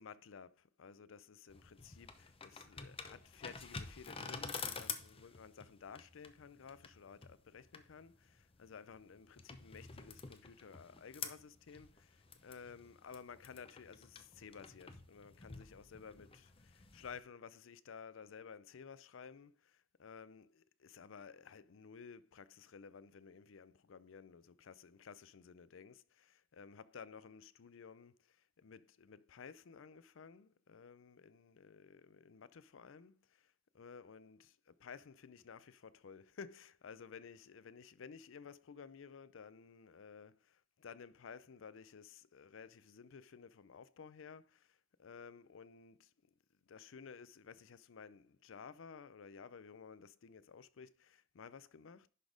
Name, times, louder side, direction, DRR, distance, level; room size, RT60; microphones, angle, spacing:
voice 1, 0.0-46.3 46.7-52.1, left 6 dB, 90° left, 0.5 m, -55 dB
sound 1, 1.5-17.2, left 5 dB, 30° left, 0.8 m, -49 dB
11.0 x 4.1 x 5.1 m
head